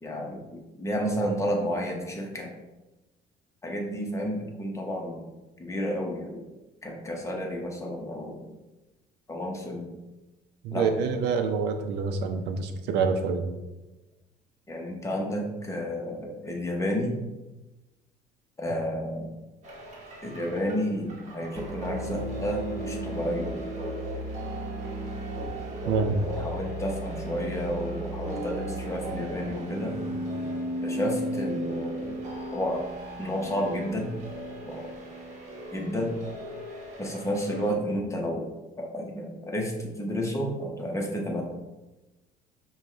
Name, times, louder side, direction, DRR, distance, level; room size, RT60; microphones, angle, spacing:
voice 1, 0.0-2.5 3.6-5.3 5.6-6.5 6.8-8.5 9.3-9.9 10.7-11.1 14.7-17.2 18.6-19.3 20.2-23.6 26.2-30.0 30.8-32.2 32.5-32.8 33.2-34.1 34.6-34.8 35.7-36.1 37.0-38.5 38.8-41.4, equal, 15° left, 0 dB, 0.8 m, -31 dB
voice 2, 10.6-13.4 25.9-26.3, right 5 dB, 85° right, 6 dB, 0.5 m, -26 dB
sound 1, 19.6-37.7, right 1 dB, 45° right, 1.0 m, -35 dB
5.3 x 2.3 x 3.2 m, 1.1 s
cardioid pair, 110°, 17 cm